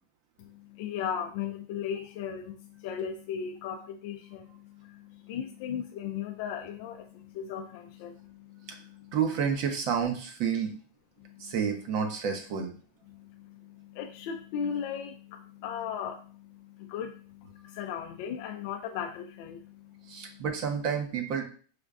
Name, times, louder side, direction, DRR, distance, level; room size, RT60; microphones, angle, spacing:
voice 1, 0.4-9.2 11.2-11.5 13.1-20.4, left 8 dB, 55° left, 3 dB, 0.4 m, -37 dB
voice 2, 9.1-10.8 11.4-12.8 20.1-21.4, right 7 dB, 50° right, 5 dB, 0.8 m, -30 dB
4.9 x 2.2 x 2.4 m, 0.41 s
supercardioid pair, 130°, 0 cm